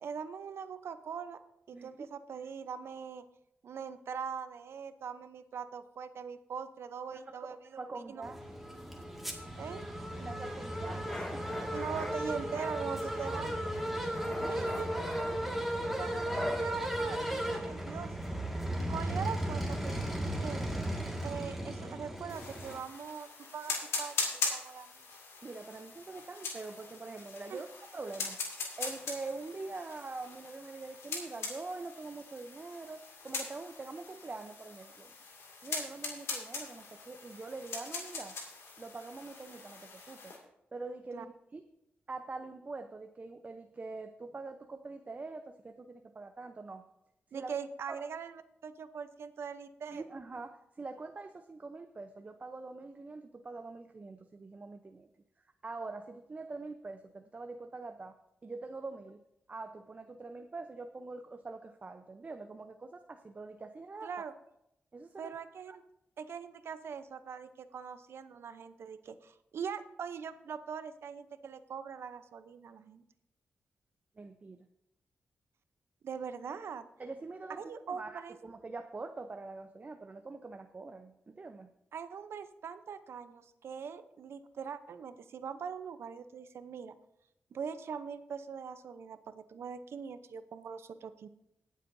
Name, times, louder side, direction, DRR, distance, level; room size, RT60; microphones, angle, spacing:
voice 1, 0.0-1.4 1.7-3.2 3.6-8.2 9.6-9.8 11.7-13.6 14.5-14.9 15.7-18.1 18.8-20.7 21.2-23.7 24.0-24.9 27.5-27.6 41.1-41.3 47.3-50.0 64.0-64.3 65.2-65.8 66.2-73.0 76.0-76.9 77.6-78.4 81.9-86.9 87.5-91.3, right 6 dB, 75° right, 11 dB, 0.7 m, -42 dB
voice 2, 7.1-8.4 10.2-11.0 11.3-11.5 14.3-14.7 25.4-28.4 28.8-35.1 35.6-38.4 38.8-40.4 40.7-41.6 42.1-46.8 47.3-47.5 47.9-48.0 49.9-55.1 55.6-58.1 58.4-59.2 59.5-64.1 64.9-65.3 65.7-65.8 74.2-74.7 77.0-77.6 77.9-81.7, right 3 dB, 35° right, 7 dB, 0.7 m, -44 dB
sound 1, 8.2-22.8, right 1 dB, 5° right, 1.9 m, -36 dB
sound 2, 10.8-12.1 12.5-13.4 13.7-16.6, left 1 dB, 25° left, 2.0 m, -42 dB
sound 3, 22.3-40.4, left 4 dB, 85° left, 2.2 m, -41 dB
21.5 x 7.4 x 2.7 m, 0.81 s
cardioid pair, 70°, 4 cm